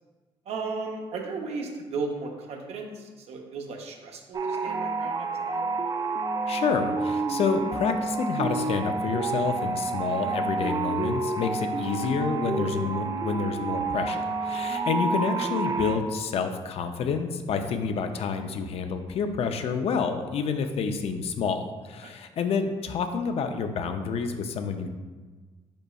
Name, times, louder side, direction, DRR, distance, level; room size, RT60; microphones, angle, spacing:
voice 1, 0.5-5.7 22.0-22.1, right 4 dB, 70° right, 2 dB, 0.7 m, -35 dB
sound 1, 4.3-16.0, right 3 dB, 35° right, 0.4 m, -29 dB
voice 2, 6.5-24.9, left 5 dB, 60° left, 7 dB, 0.4 m, -28 dB
5.3 x 4.1 x 2.3 m, 1.3 s
cardioid pair, 90°, 11 cm